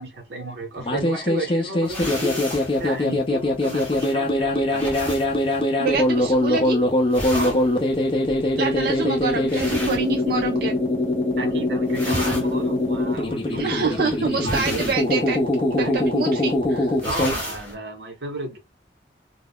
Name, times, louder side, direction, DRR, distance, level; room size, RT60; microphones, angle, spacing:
voice 1, 0.0-5.0 7.3-7.6 11.4-14.9 15.8-16.1 17.0-18.6, right 2 dB, 75° right, 0.9 m, -33 dB
sound 1, 0.8-17.3, left 1 dB, 30° left, 0.5 m, -22 dB
sound 2, 1.8-10.8 11.1-11.5 11.8-17.7, equal, 10° left, 1.0 m, -35 dB
voice 2, 5.8-6.8 8.6-10.8 13.5-15.4 15.7-17.0, right 4 dB, 55° right, 0.4 m, -26 dB
2.2 x 2.1 x 3.4 m
head